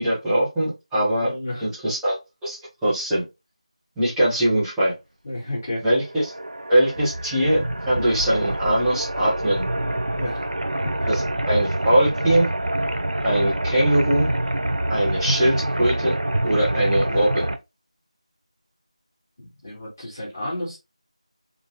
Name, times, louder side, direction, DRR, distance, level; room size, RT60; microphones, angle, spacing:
voice 1, 0.0-1.3 1.6-2.2 2.4-3.2 4.0-4.9 5.8-6.3 6.7-9.6 11.1-11.2 11.5-12.5 13.2-14.3 14.9-16.1 16.4-17.5, right 1 dB, ahead, 0.8 m, -21 dB
voice 2, 1.2-1.6 5.2-5.8 10.2-10.5 10.8-11.1 19.4-20.8, left 1 dB, 25° left, 1.6 m, -31 dB
sound 1, 6.0-17.6, right 1 dB, 85° right, 0.6 m, -26 dB
3.7 x 2.5 x 2.8 m
figure-of-eight pair, 170°, 4 cm